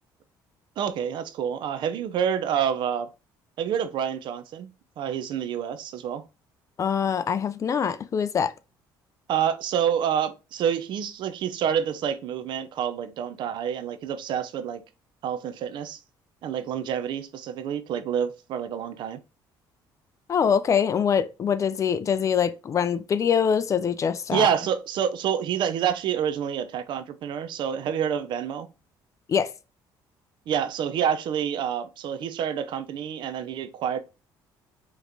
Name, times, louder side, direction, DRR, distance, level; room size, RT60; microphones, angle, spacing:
voice 1, 0.8-3.1 3.6-4.7 5.0-6.2 9.3-14.8 15.2-16.0 16.4-19.2 24.3-28.7 30.5-34.0, right 8 dB, 65° right, 0.6 m, -28 dB
voice 2, 6.8-8.5 20.3-24.5 29.3-29.5, left 7 dB, 40° left, 0.4 m, -24 dB
5.0 x 3.1 x 2.6 m
cardioid pair, 105°, 9 cm